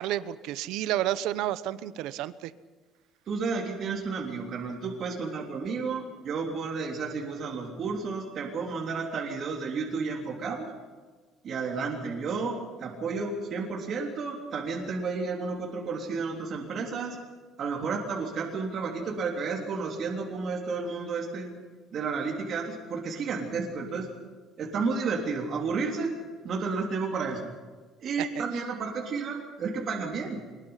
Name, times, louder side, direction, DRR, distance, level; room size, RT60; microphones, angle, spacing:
voice 1, 0.0-2.5 28.2-28.3, right 13 dB, 80° right, 16 dB, 0.8 m, -30 dB
voice 2, 3.3-10.7 11.4-17.2 17.6-21.5 21.9-24.1 24.6-26.2 26.4-27.5 28.0-30.4, right 4 dB, 45° right, 0 dB, 3.4 m, -32 dB
23.5 x 21.0 x 5.8 m, 1.4 s
cardioid pair, 150°, 0 cm